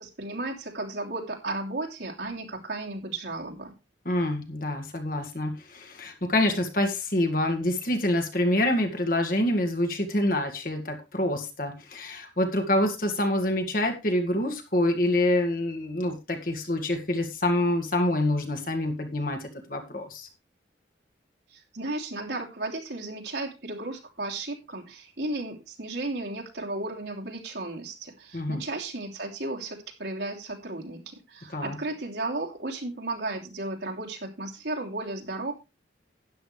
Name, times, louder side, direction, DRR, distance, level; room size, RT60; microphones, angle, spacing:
voice 1, 0.0-3.7 21.5-35.5, right 2 dB, 75° right, 0 dB, 3.1 m, -34 dB
voice 2, 4.1-20.3 28.3-28.6 31.5-31.8, left 1 dB, 50° left, 5 dB, 1.9 m, -26 dB
12.5 x 10.5 x 3.3 m, 0.26 s
head